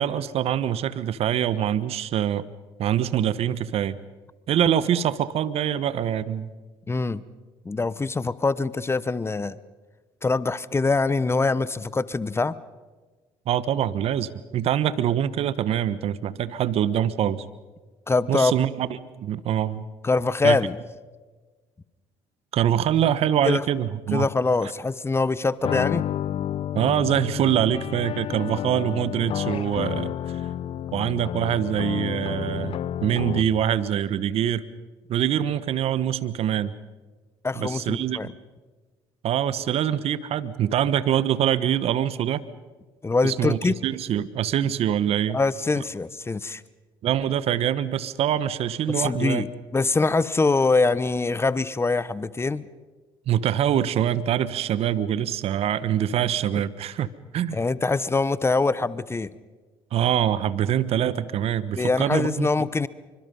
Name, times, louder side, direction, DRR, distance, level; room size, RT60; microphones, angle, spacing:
voice 1, 0.0-2.4 2.8-4.0 4.5-6.5 13.5-17.4 18.3-18.9 19.2-19.9 20.4-20.6 22.5-24.3 26.7-30.4 30.9-32.7 33.0-34.6 35.1-36.7 37.6-38.2 39.2-42.4 43.2-45.4 47.0-49.4 53.3-57.1 57.3-57.6 59.9-62.5, right 10 dB, 60° right, 16 dB, 1.2 m, -24 dB
voice 2, 6.9-7.2 7.6-9.6 10.2-12.6 18.1-18.5 20.0-20.8 23.4-23.6 24.1-26.1 37.4-38.3 43.0-43.7 45.3-46.6 48.9-52.7 57.5-59.3 61.8-62.9, left 3 dB, 20° left, 18 dB, 1.0 m, -24 dB
sound 1, 25.6-33.7, left 11 dB, 55° left, 0.9 m, -30 dB
27.0 x 25.0 x 5.5 m, 1.3 s
hypercardioid pair, 65°, 12 cm